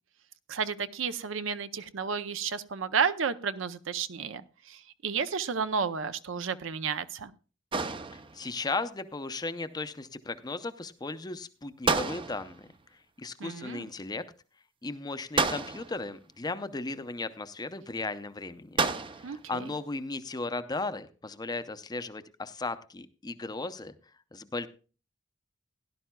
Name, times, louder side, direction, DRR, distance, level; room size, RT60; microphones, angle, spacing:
voice 1, 0.5-7.3 13.4-13.9 19.2-19.6, right 6 dB, 70° right, 13 dB, 0.6 m, -32 dB
sound 1, 7.7-8.6 11.9-12.7 15.4-16.1 18.8-19.4, right 4 dB, 25° right, 0.6 m, -30 dB
voice 2, 8.1-14.2 14.8-18.8 19.2-23.9 24.3-24.7, left 3 dB, 20° left, 12 dB, 0.6 m, -36 dB
17.0 x 11.0 x 2.3 m, 0.36 s
head